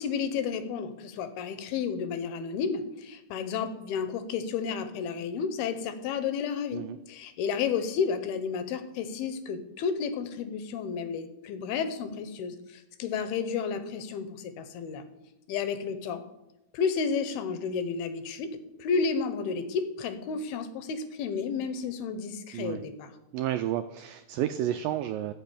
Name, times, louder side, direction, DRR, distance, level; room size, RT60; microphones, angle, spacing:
voice 1, 0.0-15.1 15.5-16.2 16.7-18.5 18.8-23.1, left 6 dB, 75° left, 10 dB, 2.9 m, -32 dB
voice 2, 23.3-25.3, right 12 dB, 90° right, 9 dB, 1.9 m, -31 dB
15.0 x 6.1 x 8.5 m, 0.93 s
omnidirectional pair, 4.6 m